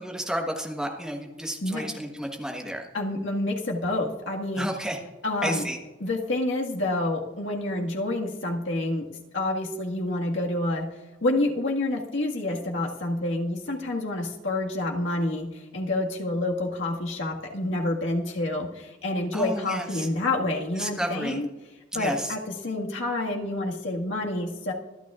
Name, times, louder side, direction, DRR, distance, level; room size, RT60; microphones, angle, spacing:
voice 1, 0.0-2.9 4.5-5.0 5.4-5.8 19.3-20.1 20.7-21.4 21.9-22.3, equal, 5° right, 1 dB, 1.3 m, -31 dB
voice 2, 2.9-4.7 5.2-5.7 6.0-9.1 9.3-10.9 11.2-21.5 21.9-24.7, left 2 dB, 80° left, -1 dB, 1.8 m, -28 dB
25.5 x 9.2 x 2.5 m, 1.1 s
head